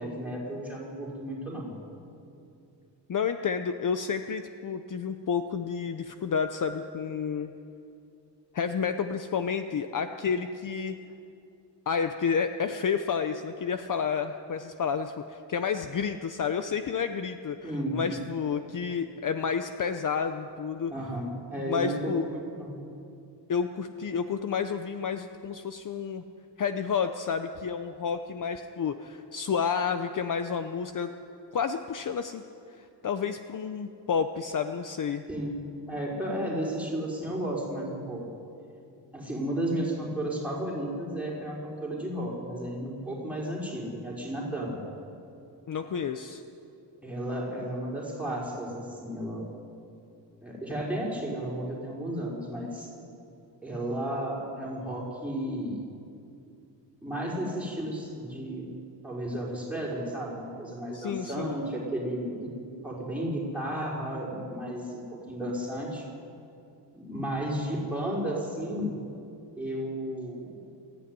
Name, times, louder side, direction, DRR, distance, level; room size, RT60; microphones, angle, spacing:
voice 1, 0.0-1.7 17.6-18.0 20.9-22.8 35.3-35.5 35.9-38.2 39.1-44.8 47.0-49.4 50.4-52.9 53.6-55.8 57.0-58.7 59.0-62.5 62.8-66.0 66.9-68.9 69.6-70.6, right 1 dB, 5° right, -4 dB, 4.9 m, -33 dB
voice 2, 3.1-7.5 8.5-10.9 11.9-20.9 21.7-22.3 23.5-26.2 26.6-31.1 31.5-32.4 32.8-35.2 45.7-46.4 60.9-61.6, left 6 dB, 45° left, 8 dB, 0.8 m, -30 dB
21.5 x 14.5 x 9.7 m, 2.6 s
wide cardioid pair, 160°, 43 cm